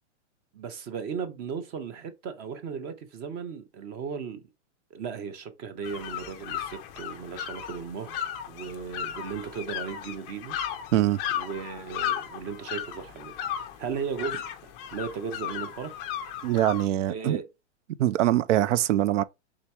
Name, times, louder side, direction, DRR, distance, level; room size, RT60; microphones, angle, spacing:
voice 1, 0.5-4.5 4.9-8.2 8.5-10.6 11.4-16.0 17.1-17.4, right 6 dB, 25° right, 0.6 m, -36 dB
sound 1, 5.8-16.9, left 10 dB, 20° left, 0.4 m, -35 dB
voice 2, 16.4-17.4 18.0-19.2, right 13 dB, 85° right, 0.5 m, -23 dB
3.6 x 2.8 x 4.4 m
hypercardioid pair, 145°, 35 cm